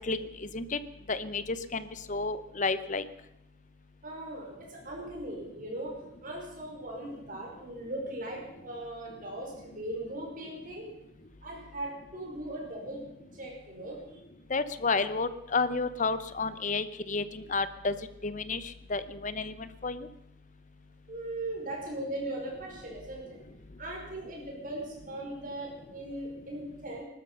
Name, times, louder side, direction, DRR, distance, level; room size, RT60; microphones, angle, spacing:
voice 1, 1.1-3.0 14.5-17.9 18.2-18.6 18.9-20.1, left 4 dB, 40° left, 14 dB, 0.9 m, -31 dB
voice 2, 4.0-5.9 6.2-10.9 11.4-13.0 13.3-14.0 21.1-23.4 23.8-27.0, right 1 dB, 45° right, -1 dB, 5.4 m, -39 dB
20.0 x 13.0 x 5.6 m, 0.86 s
head